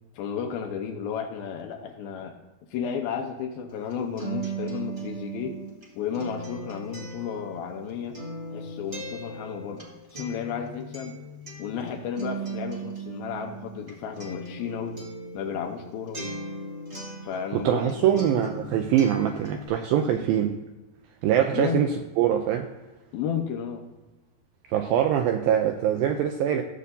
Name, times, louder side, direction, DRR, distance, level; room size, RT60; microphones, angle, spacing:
voice 1, 0.1-2.4 2.7-5.6 6.0-8.2 8.5-11.2 11.6-15.0 15.3-16.2 17.2-18.3 20.0-20.3 21.5-21.8 23.1-23.9, left 7 dB, 75° left, 2.5 m, -33 dB
Acoustic guitar, 3.7-17.9 18.2-19.7, right 2 dB, 40° right, 0.7 m, -38 dB
voice 2, 17.5-20.6 21.2-21.9 22.2-22.7 24.7-26.6, right 10 dB, 85° right, 2.1 m, -23 dB
16.0 x 7.6 x 2.7 m
omnidirectional pair, 4.7 m